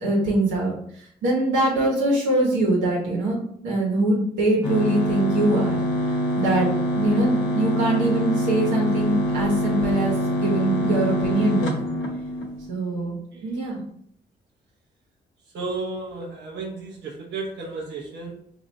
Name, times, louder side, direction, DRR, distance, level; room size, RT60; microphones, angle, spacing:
voice 1, 0.0-0.7 1.2-3.4 3.6-5.8 6.4-6.7 6.9-11.9 12.7-13.1 13.4-13.8, right 1 dB, 90° right, -4 dB, 1.2 m, -23 dB
sound 1, 4.6-12.7, equal, 80° left, 0.8 m, -25 dB
voice 2, 12.9-13.6 15.5-18.3, right 3 dB, 70° right, -5 dB, 0.9 m, -34 dB
2.7 x 2.5 x 4.2 m, 0.67 s
supercardioid pair, 50°, 19 cm